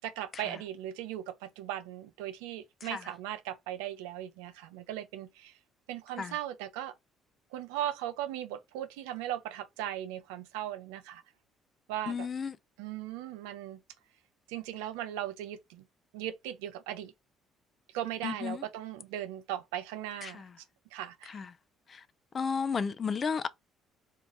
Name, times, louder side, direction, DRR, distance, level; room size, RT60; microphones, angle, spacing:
voice 1, 0.0-5.5 5.9-6.9 7.5-11.2 11.9-12.3 12.8-13.8 14.5-15.8 16.1-17.1 17.9-20.4 20.9-21.4, right 12 dB, 85° right, 0.5 m, -38 dB
voice 2, 12.1-12.5 18.2-18.6 20.2-20.3 21.3-21.5 22.3-23.5, left 6 dB, 45° left, 0.5 m, -32 dB
3.7 x 2.4 x 4.6 m
hypercardioid pair, 60°, 0 cm